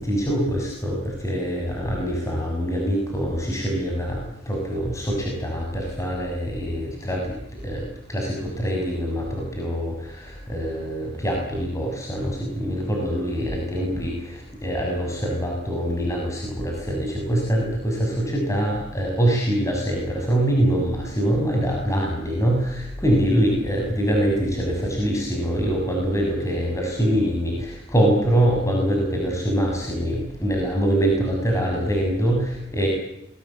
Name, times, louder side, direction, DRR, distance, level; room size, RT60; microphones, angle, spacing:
voice 1, 0.0-32.9, equal, 15° left, 0 dB, 6.6 m, -24 dB
28.0 x 21.5 x 8.7 m, 0.81 s
head